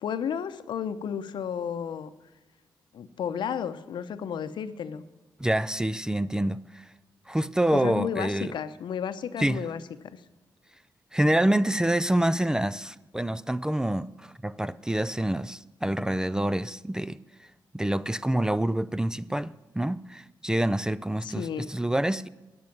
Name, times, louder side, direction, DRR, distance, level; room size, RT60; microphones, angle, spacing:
voice 1, 0.0-2.1 2.9-5.0 7.7-10.2 21.2-21.7, left 8 dB, 70° left, 0.7 m, -33 dB
voice 2, 5.4-6.9 7.3-8.5 9.4-9.6 11.1-17.2 17.7-22.3, right 1 dB, 10° right, 0.4 m, -27 dB
10.5 x 6.3 x 8.6 m
cardioid pair, 75°, 8 cm